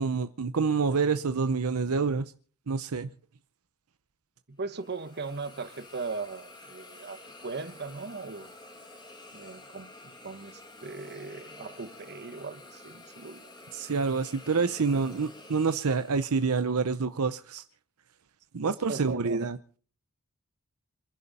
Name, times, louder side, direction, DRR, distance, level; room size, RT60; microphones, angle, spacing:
voice 1, 0.0-2.3 2.7-3.1 13.7-17.6 18.5-19.6, right 4 dB, 75° right, 0.7 m, -27 dB
voice 2, 4.5-8.5 9.3-13.5 14.9-15.0 18.6-19.5, right 4 dB, 50° right, 1.3 m, -39 dB
Hiss, 4.7-16.8, left 2 dB, 20° left, 2.8 m, -50 dB
27.5 x 11.0 x 4.2 m
head